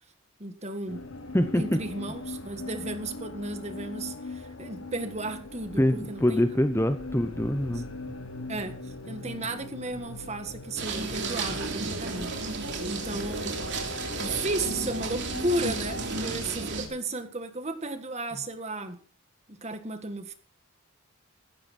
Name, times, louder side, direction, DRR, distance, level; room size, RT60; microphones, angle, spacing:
voice 1, 0.4-1.0 1.5-6.5 7.7-7.8 8.5-13.6 14.2-19.0 19.5-20.3, right 2 dB, 30° right, 1.7 m, -34 dB
sound 1, 0.9-16.2, left 2 dB, 65° left, 1.5 m, -40 dB
voice 2, 5.8-7.9, left 1 dB, 10° left, 0.9 m, -24 dB
sound 2, 10.8-16.9, right 3 dB, 55° right, 3.2 m, -33 dB
16.0 x 13.5 x 4.4 m
head